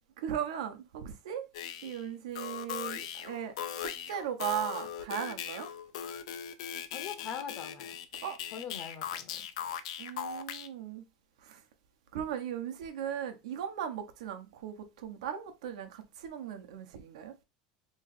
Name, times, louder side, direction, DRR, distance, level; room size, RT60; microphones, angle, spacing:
voice 1, 0.2-1.5 1.8-3.5 3.8-5.7 8.2-8.4 10.0-11.0 11.4-11.6 12.1-14.7 15.0-17.3, right 9 dB, 85° right, 0.9 m, -37 dB
sound 1, 1.5-2.0 2.4-10.7, left 9 dB, 80° left, 0.5 m, -39 dB
voice 2, 6.9-8.0 8.5-9.5, left 7 dB, 45° left, 0.9 m, -42 dB
3.1 x 2.6 x 4.0 m
supercardioid pair, 135°, 3 cm